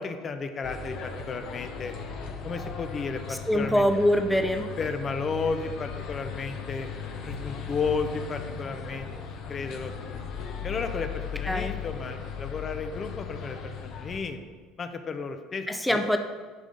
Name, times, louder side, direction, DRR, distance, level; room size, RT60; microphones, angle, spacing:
voice 1, 0.0-1.9 2.4-3.8 4.8-6.9 7.2-9.1 9.5-9.9 10.6-14.4 14.8-16.0, left 4 dB, 40° left, 7 dB, 0.7 m, -33 dB
sound 1, 0.6-14.2, left 6 dB, 60° left, 1.0 m, -37 dB
voice 2, 3.3-4.7 11.5-11.7 15.7-16.2, equal, ahead, 5 dB, 0.6 m, -24 dB
8.4 x 5.3 x 3.9 m, 1.5 s
supercardioid pair, 80°, 0 cm